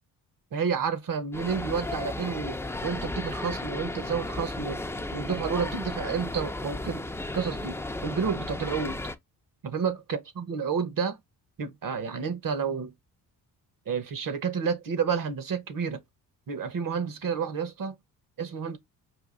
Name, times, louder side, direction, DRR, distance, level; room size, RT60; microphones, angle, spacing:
voice 1, 0.5-2.6 2.8-4.8 5.1-9.0 9.6-11.2 11.6-12.9 13.9-16.0 16.5-18.0 18.4-18.8, right 6 dB, 50° right, 1.2 m, -30 dB
sound 1, 1.3-9.1, left 2 dB, 5° left, 0.6 m, -34 dB
5.0 x 2.6 x 3.8 m
supercardioid pair, 70°, 42 cm